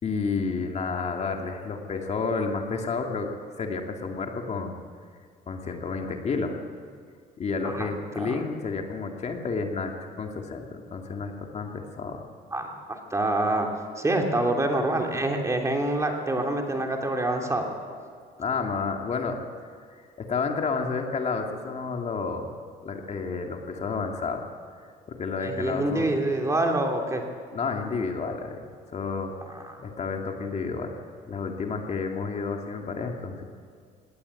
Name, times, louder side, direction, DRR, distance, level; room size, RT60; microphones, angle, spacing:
voice 1, 0.0-4.8 5.5-6.6 7.4-12.2 18.4-19.4 19.9-22.5 22.8-24.5 25.1-26.1 27.5-31.0 31.3-33.4, left 4 dB, 40° left, 3 dB, 2.3 m, -31 dB
voice 2, 12.5-13.7 14.0-17.7 25.4-27.2 29.7-29.8, right 1 dB, 15° right, 2 dB, 2.9 m, -26 dB
19.5 x 18.0 x 8.4 m, 2.2 s
cardioid pair, 110°, 17 cm